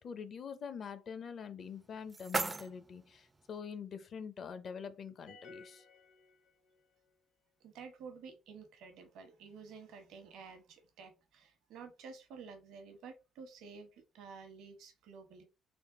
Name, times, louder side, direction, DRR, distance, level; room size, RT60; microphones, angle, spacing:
voice 1, 0.0-5.8, left 6 dB, 50° left, 0.6 m, -45 dB
sound 1, 1.6-3.6, right 3 dB, 20° right, 0.3 m, -40 dB
sound 2, 5.3-7.0, left 4 dB, 85° left, 1.6 m, -56 dB
voice 2, 7.6-15.4, right 5 dB, 75° right, 1.0 m, -51 dB
3.5 x 2.0 x 3.7 m
cardioid pair, 80°, 0 cm